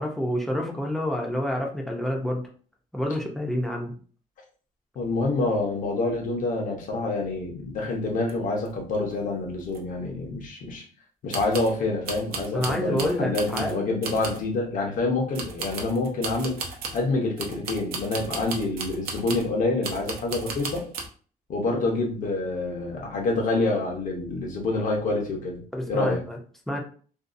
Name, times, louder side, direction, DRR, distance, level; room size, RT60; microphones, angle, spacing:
voice 1, 0.0-2.4 2.9-3.9 12.5-13.8 25.7-26.4 26.7-26.8, equal, ahead, 0 dB, 0.5 m, -28 dB
voice 2, 5.0-10.8 11.2-16.6 16.9-20.8 21.5-25.6 25.9-26.2, left 2 dB, 60° left, 1 dB, 0.8 m, -27 dB
sound 1, 8.3-8.4 8.6-8.7 9.1-9.2 9.7-9.8 11.3-11.8 12.1-13.8 14.0-14.5 15.3-17.1 17.4-19.5 19.8-21.1, right 4 dB, 90° right, 0.6 m, -35 dB
2.6 x 2.3 x 2.4 m, 0.42 s
cardioid pair, 160°, 15 cm